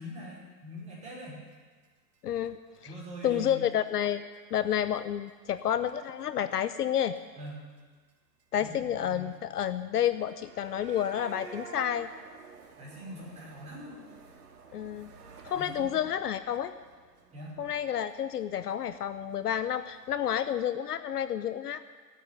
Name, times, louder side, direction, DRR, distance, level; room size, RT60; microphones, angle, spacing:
voice 1, 0.0-1.4 2.8-3.6 7.4-7.7 8.6-9.3 12.8-14.0 15.5-16.0 17.3-17.6, left 1 dB, 15° right, -5 dB, 5.4 m, -43 dB
sound 1, 1.2-1.3 1.5-1.6 1.8-1.9 2.1-2.2 2.5-2.6 2.8-2.9 3.1-3.4 3.7-3.8 4.0-4.1 4.3-4.6 5.0-5.1 5.3-5.9 6.2-6.5 6.8-6.9 7.2-7.3 7.5-7.6 7.8-7.9 8.1-8.2 8.4-20.3, right 5 dB, 65° right, 2.7 m, -52 dB
voice 2, 2.2-2.6 3.2-4.2 4.5-7.1 8.5-12.1 14.7-15.1 15.4-16.7 17.6-21.8, left 10 dB, 65° left, 12 dB, 0.9 m, -30 dB
15.5 x 9.4 x 9.2 m, 1.4 s
hypercardioid pair, 150°, 50 cm